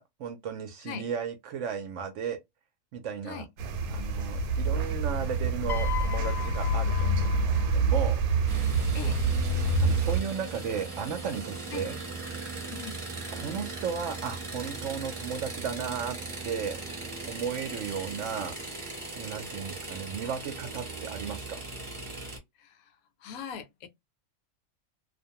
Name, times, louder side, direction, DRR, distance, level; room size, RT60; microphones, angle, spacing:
voice 1, 0.0-2.4 2.9-3.5 3.9-8.2 9.8-12.0 13.3-16.2 16.4-16.8 17.3-18.6 19.2-21.6, right 7 dB, 70° right, 0.8 m, -35 dB
sound 1, 3.6-10.2, right 3 dB, 90° right, 1.1 m, -26 dB
Piano, 5.7-8.0 9.1-9.3, left 11 dB, 25° left, 0.6 m, -38 dB
sound 2, 8.5-22.4, right 3 dB, 25° right, 0.8 m, -39 dB
voice 2, 23.2-23.9, left 7 dB, 80° left, 1.0 m, -40 dB
2.5 x 2.2 x 2.7 m
omnidirectional pair, 1.5 m